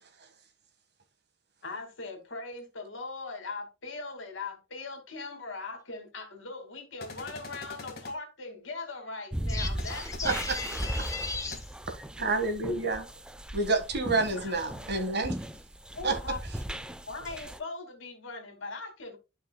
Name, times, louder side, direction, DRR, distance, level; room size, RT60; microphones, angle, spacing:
voice 1, 1.6-10.3 14.4-14.6 15.9-16.4 17.1-19.2, left 3 dB, 70° left, 2.3 m, -40 dB
sound 1, 7.0-8.1 9.8-9.9 10.1-10.2 10.8-10.9 11.5-11.6, left 3 dB, 50° left, 1.9 m, -43 dB
sound 2, 9.3-17.6, equal, 5° right, 0.4 m, -37 dB
voice 2, 9.5-11.7, left 4 dB, 15° left, 1.5 m, -36 dB
voice 3, 10.2-10.6 12.2-13.1 13.5-15.4 16.0-16.3, right 3 dB, 55° right, 1.7 m, -29 dB
12.0 x 5.5 x 2.3 m
head